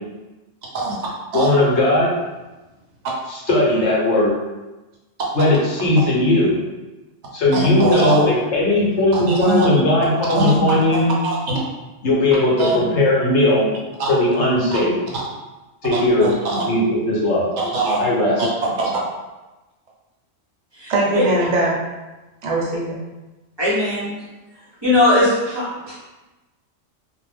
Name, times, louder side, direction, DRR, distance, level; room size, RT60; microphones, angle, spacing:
voice 1, 0.7-1.1 1.3-1.5 7.5-8.2 9.1-9.7 10.3-10.6 10.9-11.6 12.6-12.8 14.0-14.1 15.1-15.2 15.9-16.7 17.6-18.0 18.6-19.0 20.9-21.8 22.4-23.0, right 2 dB, 70° right, -3 dB, 0.9 m, -22 dB
voice 2, 1.3-2.1 3.3-4.3 5.3-6.5 7.3-11.1 12.0-13.7 14.1-15.0 15.8-16.3 16.7-17.5 18.0-18.5, left 1 dB, 70° left, -4 dB, 1.0 m, -17 dB
voice 3, 20.7-21.2 23.6-24.1 24.8-25.9, left 2 dB, 25° right, -8 dB, 0.6 m, -19 dB
2.5 x 2.0 x 3.3 m, 1.1 s
omnidirectional pair, 1.3 m